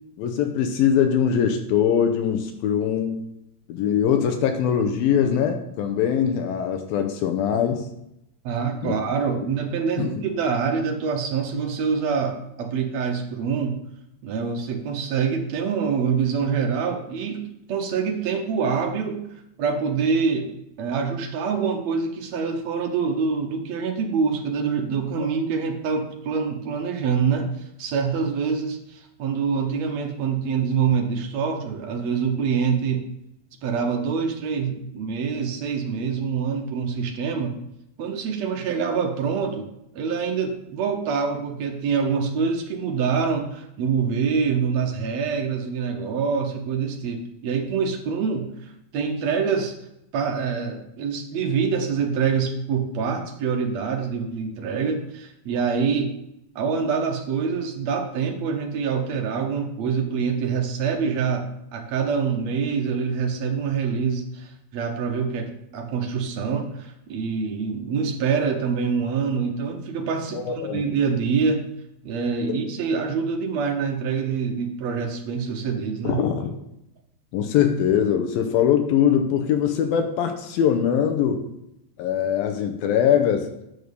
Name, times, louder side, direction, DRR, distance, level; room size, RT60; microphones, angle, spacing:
voice 1, 0.2-3.2 3.7-7.9 8.8-8.9 10.0-10.2 70.3-70.8 72.5-72.6 76.0-76.5 77.3-81.5 82.0-83.5, left 8 dB, 75° left, 6 dB, 2.4 m, -22 dB
voice 2, 8.4-13.8 14.2-19.2 19.6-20.5 20.8-33.0 33.6-37.5 38.0-49.7 50.1-56.1 56.5-71.7 72.0-76.2, right 6 dB, 85° right, 2 dB, 1.5 m, -25 dB
9.7 x 6.6 x 5.2 m, 0.82 s
omnidirectional pair, 4.6 m